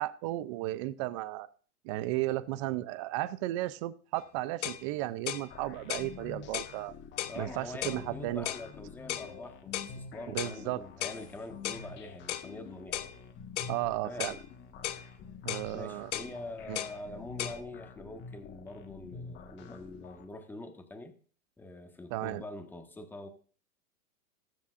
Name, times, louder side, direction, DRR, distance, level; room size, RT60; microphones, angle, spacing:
voice 1, 0.0-1.5 1.8-6.9 7.4-8.5 10.3-10.8 13.7-14.4 15.4-16.1 16.7-16.8 22.1-22.4, right 16 dB, 25° right, 0.4 m, -34 dB
sound 1, 4.2-4.3 4.6-4.8 5.3-5.5 5.9-6.1 6.5-6.8 7.2-7.4 7.8-8.0 8.5-8.7 9.1-9.3 9.7-9.9 10.4-10.6 11.0-11.2 11.6-11.9 12.3-12.5 12.9-13.1 13.6-13.8 14.2-14.4 14.8-15.1 15.5-15.7 16.1-16.3 16.8-17.0 17.4-17.6, left 13 dB, 55° left, 0.9 m, -36 dB
sound 2, 5.5-20.3, left 5 dB, 25° left, 1.4 m, -48 dB
voice 2, 7.3-13.0 14.0-14.3 15.7-21.1 21.6-23.3, left 2 dB, 5° left, 1.2 m, -44 dB
20.0 x 7.1 x 2.5 m
hypercardioid pair, 135°, 42 cm